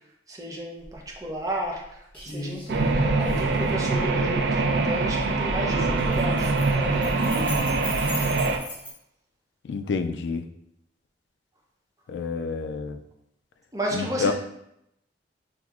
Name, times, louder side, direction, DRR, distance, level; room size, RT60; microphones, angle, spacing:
voice 1, 0.3-7.6 13.7-14.3, right 1 dB, 20° right, -1 dB, 0.6 m, -33 dB
sound 1, 0.8-0.9 1.3-1.8 2.1-2.7 3.2-5.1 5.9-8.9, left 1 dB, 10° left, 0.8 m, -38 dB
sound 2, 2.7-8.6, right 3 dB, 65° right, 0.4 m, -24 dB
voice 2, 9.7-10.4 12.1-13.0 13.9-14.3, left 4 dB, 75° left, 9 dB, 0.3 m, -28 dB
5.9 x 2.0 x 2.4 m, 0.79 s
head